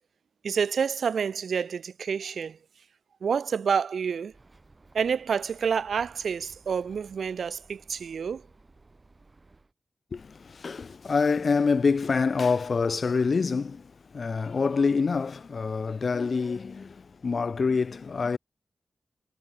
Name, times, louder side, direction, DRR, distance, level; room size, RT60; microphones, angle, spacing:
voice 1, 0.4-2.6 3.2-4.3 4.9-8.4, right 6 dB, 85° right, 0.8 m, -28 dB
Bird, 4.3-9.7, right 3 dB, 25° right, 5.8 m, -56 dB
voice 2, 10.1-18.4, left 4 dB, 50° left, 0.7 m, -26 dB
wide cardioid pair, 150°, 0 cm